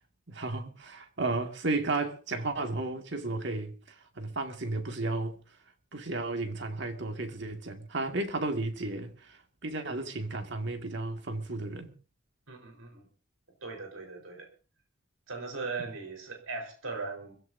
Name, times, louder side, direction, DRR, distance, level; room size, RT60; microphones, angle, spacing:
voice 1, 0.3-3.7 4.2-5.4 5.9-11.9, right 2 dB, 60° right, 2.1 m, -33 dB
voice 2, 12.5-13.1 13.6-14.5 15.3-17.3, right 4 dB, 90° right, 4.4 m, -39 dB
25.5 x 15.5 x 2.7 m
head